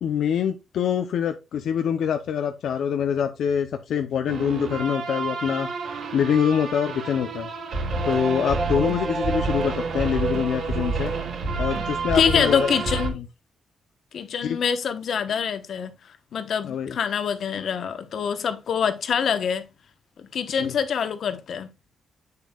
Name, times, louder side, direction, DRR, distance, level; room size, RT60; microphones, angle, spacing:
voice 1, 0.0-7.5 8.0-11.1 11.6-12.7 13.1-13.2 14.4-14.6 16.6-17.0 20.6-20.7, left 8 dB, 85° left, 0.7 m, -25 dB
sound 1, 4.3-13.1, right 4 dB, 75° right, 2.9 m, -28 dB
voice 2, 12.1-13.1 14.1-15.9 16.3-19.7 20.3-21.7, left 7 dB, 70° left, 1.1 m, -25 dB
8.6 x 6.8 x 2.4 m
cardioid pair, 105°, 0 cm